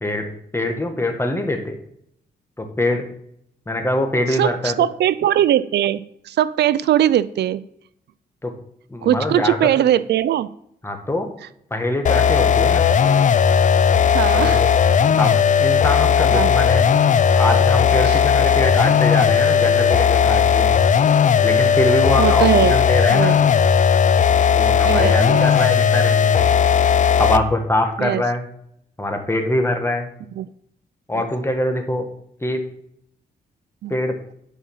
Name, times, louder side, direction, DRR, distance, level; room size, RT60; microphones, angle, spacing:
voice 1, 0.0-1.7 2.6-3.0 3.7-4.8 8.4-8.5 8.9-9.8 10.8-11.3 11.7-12.9 14.3-14.7 15.2-16.9 17.4-20.8 21.4-23.3 24.6-26.5 27.2-28.5 29.0-30.1 31.1-32.1 32.4-32.6 33.9-34.2, left 1 dB, 15° left, 5 dB, 1.8 m, -23 dB
voice 2, 4.3-7.6 9.0-10.5 14.1-14.6 16.3-16.5 18.0-18.2 22.2-22.7 23.1-23.3 24.8-25.5 28.0-28.2 30.4-30.5 33.8-33.9, right 11 dB, 80° right, 17 dB, 0.5 m, -20 dB
sound 1, 12.1-27.5, left 7 dB, 45° left, 0.5 m, -16 dB
10.0 x 5.6 x 5.6 m, 0.71 s
cardioid pair, 90°, 17 cm